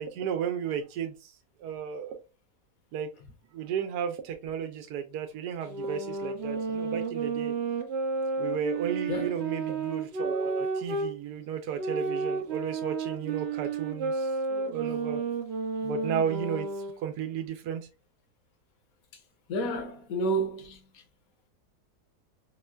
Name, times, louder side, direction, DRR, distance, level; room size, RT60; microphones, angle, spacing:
voice 1, 0.0-1.3 1.6-2.2 2.9-3.1 3.5-7.5 8.4-15.2 15.8-16.7 17.0-17.9, right 8 dB, 80° right, 1.2 m, -33 dB
sound 1, 5.6-11.1 11.7-17.0, right 4 dB, 60° right, 0.7 m, -32 dB
voice 2, 19.5-20.8, right 1 dB, 60° left, 1.3 m, -30 dB
4.4 x 2.1 x 2.3 m
omnidirectional pair, 1.8 m